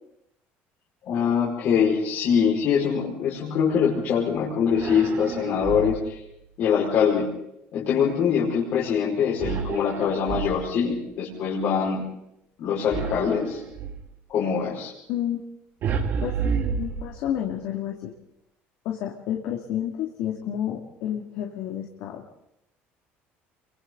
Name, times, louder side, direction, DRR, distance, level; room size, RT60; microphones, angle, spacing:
voice 1, 1.0-6.2 6.6-7.4 7.7-12.1 12.6-13.6 14.3-14.9, left 7 dB, 60° left, -5 dB, 5.4 m, -23 dB
sound 1, 4.7-6.2 9.4-10.9 12.9-14.1 15.8-17.5, right 6 dB, 50° right, 2.4 m, -30 dB
voice 2, 15.1-15.4 16.2-16.3 16.8-18.1 18.8-22.2, left 10 dB, 75° left, 1 dB, 2.5 m, -30 dB
28.0 x 24.0 x 4.0 m, 0.81 s
cardioid pair, 140°, 5 cm